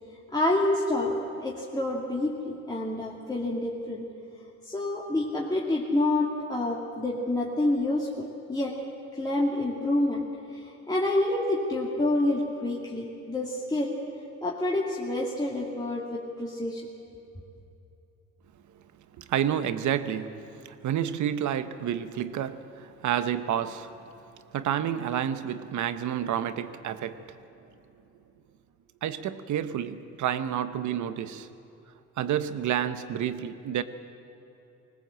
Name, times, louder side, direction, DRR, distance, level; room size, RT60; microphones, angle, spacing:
voice 1, 0.3-4.0 4.6-8.8 9.1-14.0 14.4-16.9, left 1 dB, 15° left, -4 dB, 2.3 m, -28 dB
voice 2, 19.2-23.9 24.5-27.2 29.0-31.5 32.2-33.8, right 10 dB, 75° right, 11 dB, 1.1 m, -29 dB
20.5 x 19.0 x 7.7 m, 2.9 s
cardioid pair, 90°, 30 cm